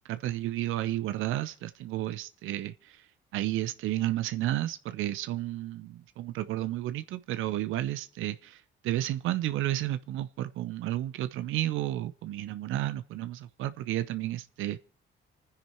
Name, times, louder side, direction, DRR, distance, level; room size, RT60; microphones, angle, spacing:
voice 1, 0.0-3.0 3.3-14.8, right 14 dB, 90° right, 0.8 m, -32 dB
28.5 x 10.0 x 4.5 m
cardioid pair, 90°, 20 cm